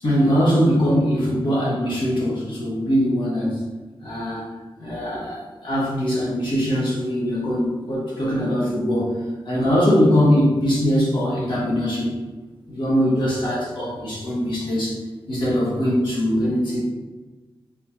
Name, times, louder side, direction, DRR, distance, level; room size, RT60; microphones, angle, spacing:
voice 1, 0.0-3.6 4.0-4.5 4.8-12.1 12.7-15.0 15.3-16.8, equal, 55° left, -6 dB, 1.4 m, -21 dB
4.6 x 3.2 x 2.7 m, 1.2 s
wide cardioid pair, 160°, 10 cm